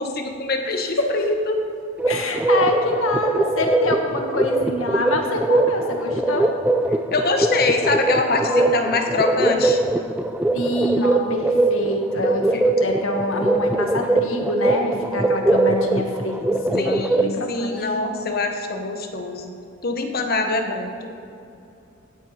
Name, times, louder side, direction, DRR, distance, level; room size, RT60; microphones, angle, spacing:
voice 1, 0.0-1.6 7.1-9.8 12.5-12.6 16.8-19.6 19.8-21.1, left 3 dB, 50° left, 4 dB, 1.2 m, -24 dB
sound 1, 2.0-17.3, right 2 dB, 5° right, 0.4 m, -22 dB
voice 2, 2.1-6.5 8.4-8.6 10.5-17.8, left 1 dB, 80° left, 2 dB, 1.7 m, -25 dB
16.5 x 8.1 x 4.4 m, 2.6 s
head